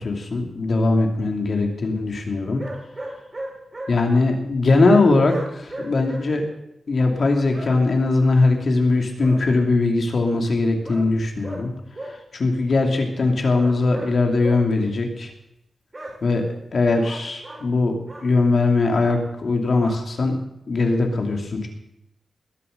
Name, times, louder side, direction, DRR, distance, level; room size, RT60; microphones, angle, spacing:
voice 1, 0.0-2.6 3.9-6.4 6.9-11.7 12.3-15.3 16.2-16.5 16.7-20.4 20.7-21.7, left 3 dB, 55° left, 3 dB, 2.7 m, -20 dB
sound 1, 2.6-3.9 4.8-6.2 7.5-7.7 9.2-9.4 10.8-11.1 11.4-11.6 11.9-12.1 13.5-14.1 14.4-14.6 15.9-16.1 17.0-17.6 18.1-18.3 19.8-20.0, right 1 dB, 30° right, 4.9 m, -35 dB
20.5 x 7.8 x 6.6 m, 0.82 s
wide cardioid pair, 100°, 0 cm